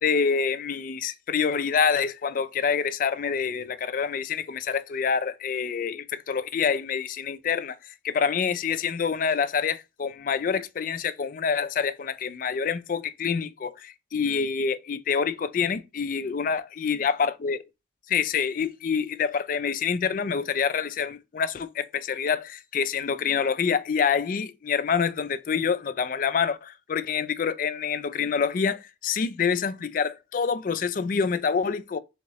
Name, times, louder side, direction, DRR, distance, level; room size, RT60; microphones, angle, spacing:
voice 1, 0.0-17.6 18.1-32.0, left 6 dB, 45° left, 0.3 m, -27 dB
3.5 x 2.9 x 4.0 m
head